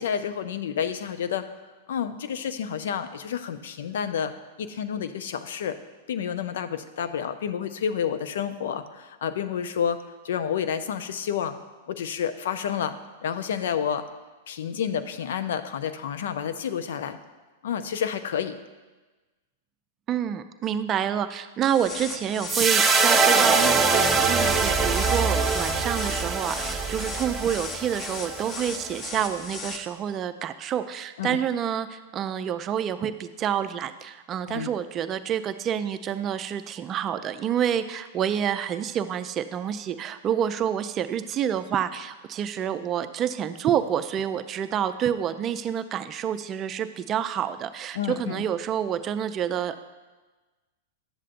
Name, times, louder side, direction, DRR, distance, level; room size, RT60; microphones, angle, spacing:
voice 1, 0.0-1.5 1.9-4.3 4.6-5.8 6.1-11.5 11.9-13.0 13.2-14.0 14.5-17.2 17.6-18.6 31.2-31.4 34.5-34.7 47.9-48.4, left 8 dB, 70° left, 10 dB, 0.5 m, -29 dB
voice 2, 20.1-49.8, right 9 dB, 30° right, 10 dB, 0.4 m, -28 dB
sound 1, 21.6-29.8, left 3 dB, 35° left, 0.9 m, -37 dB
sound 2, 22.5-28.9, right 4 dB, 15° right, 1.0 m, -23 dB
11.0 x 7.5 x 2.5 m, 1.2 s
hypercardioid pair, 100°, 0 cm